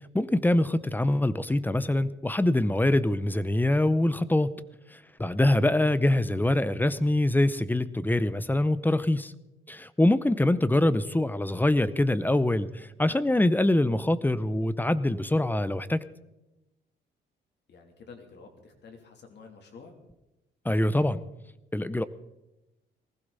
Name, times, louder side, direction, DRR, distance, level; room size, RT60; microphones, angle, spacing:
voice 1, 0.1-4.5 5.2-9.3 9.7-16.0 20.6-21.2 21.7-22.0, left 1 dB, 10° left, 15 dB, 0.8 m, -24 dB
voice 2, 17.7-20.0, left 5 dB, 60° left, 3 dB, 3.2 m, -49 dB
19.5 x 15.5 x 4.1 m, 0.98 s
cardioid pair, 90°, 20 cm